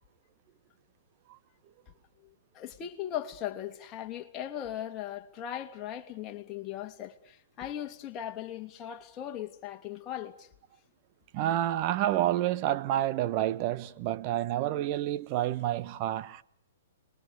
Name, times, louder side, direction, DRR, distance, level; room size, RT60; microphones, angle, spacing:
voice 1, 2.2-10.5, left 11 dB, 25° left, 2.8 m, -38 dB
voice 2, 11.3-16.4, right 13 dB, 40° right, 1.3 m, -29 dB
30.0 x 22.0 x 6.7 m
hypercardioid pair, 130°, 0 cm